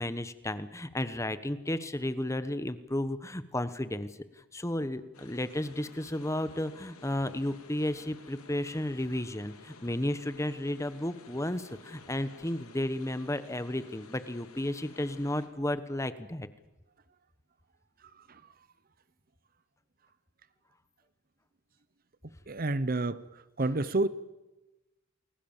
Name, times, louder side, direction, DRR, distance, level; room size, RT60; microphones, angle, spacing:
voice 1, 0.0-4.1 4.5-16.5, left 1 dB, 15° left, 12 dB, 1.1 m, -33 dB
sound 1, 5.1-15.5, left 3 dB, 80° left, 3.6 m, -54 dB
voice 2, 22.5-23.2 23.6-24.1, right 2 dB, 40° right, 15 dB, 0.8 m, -29 dB
29.5 x 21.0 x 7.3 m, 1.0 s
head